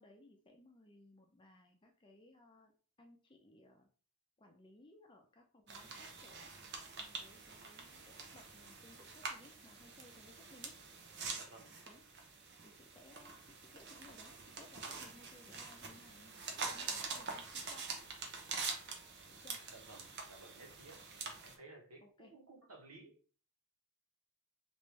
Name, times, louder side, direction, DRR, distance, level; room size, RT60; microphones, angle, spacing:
voice 1, 0.0-2.7 3.0-3.9 4.4-6.5 6.8-10.8 11.9-12.0 12.6-17.9 19.4-19.6 22.0-22.4, left 1 dB, 20° left, 3 dB, 0.5 m, -62 dB
sound 1, 5.7-21.5, right 4 dB, 50° right, 0.6 m, -46 dB
voice 2, 11.3-11.7 19.7-21.0 21.4-23.1, right 2 dB, 85° right, 0 dB, 1.1 m, -56 dB
3.2 x 2.6 x 3.2 m, 0.40 s
head